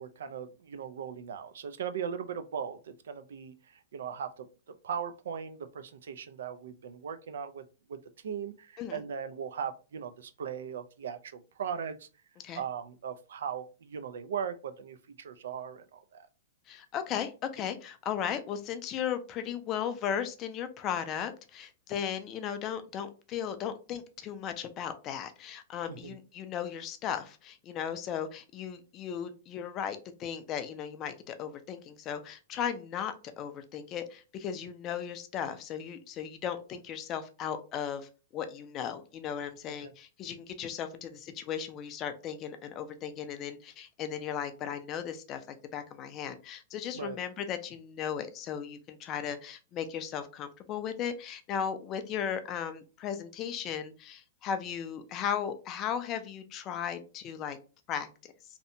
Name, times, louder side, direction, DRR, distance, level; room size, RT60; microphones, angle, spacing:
voice 1, 0.0-3.5 3.9-4.5 4.8-7.6 7.9-8.0 8.2-12.1 12.6-16.2 25.9-26.2 39.8-39.9 46.9-47.2, right 7 dB, 80° right, 10 dB, 0.3 m, -38 dB
voice 2, 16.7-45.4 45.7-57.6 57.9-58.1, left 8 dB, 25° left, 9 dB, 0.3 m, -36 dB
2.7 x 2.1 x 2.6 m, 0.34 s
hypercardioid pair, 160°, 0 cm